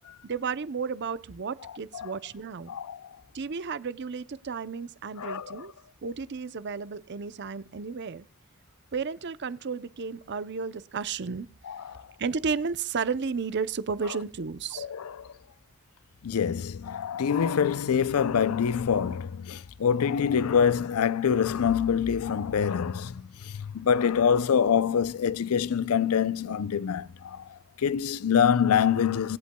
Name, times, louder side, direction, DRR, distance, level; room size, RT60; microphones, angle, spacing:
voice 1, 0.2-2.7 3.3-5.7 6.0-8.3 8.9-11.5 12.2-14.9, right 5 dB, 55° right, 0.6 m, -33 dB
voice 2, 2.7-3.1 5.2-5.7 11.7-12.0 14.8-15.3 16.2-29.4, left 7 dB, 90° left, 0.5 m, -25 dB
24.5 x 8.3 x 2.2 m
head